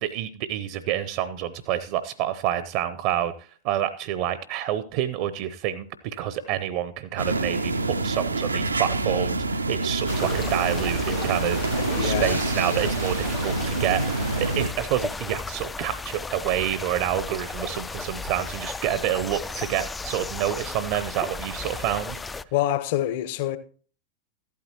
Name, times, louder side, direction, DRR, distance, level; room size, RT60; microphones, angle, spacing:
voice 1, 0.0-3.3 3.6-11.7 12.0-22.2, right 11 dB, 45° right, 0.8 m, -28 dB
sound 1, 7.2-14.7, right 2 dB, 80° right, 0.8 m, -26 dB
sound 2, 10.1-22.4, left 4 dB, 10° left, 0.4 m, -35 dB
voice 2, 11.8-12.4 22.5-23.6, left 13 dB, 50° left, 1.2 m, -26 dB
14.5 x 12.0 x 3.0 m
figure-of-eight pair, 90°, 0 cm